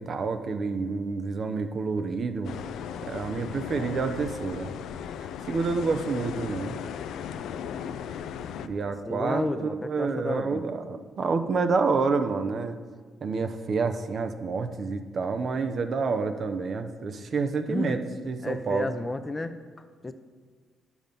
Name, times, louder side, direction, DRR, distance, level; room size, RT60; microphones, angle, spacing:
voice 1, 0.0-2.5 3.1-4.7 5.5-6.8 8.6-9.4 9.7-12.8 13.2-18.0 18.2-18.9, right 4 dB, 50° right, 8 dB, 0.8 m, -28 dB
sound 1, 2.4-8.7, left 8 dB, 80° left, 0.4 m, -36 dB
voice 2, 9.1-10.6 17.7-17.9 18.4-20.1, left 2 dB, 20° left, 9 dB, 0.7 m, -32 dB
10.0 x 7.2 x 5.4 m, 1.5 s
cardioid pair, 90°, 0 cm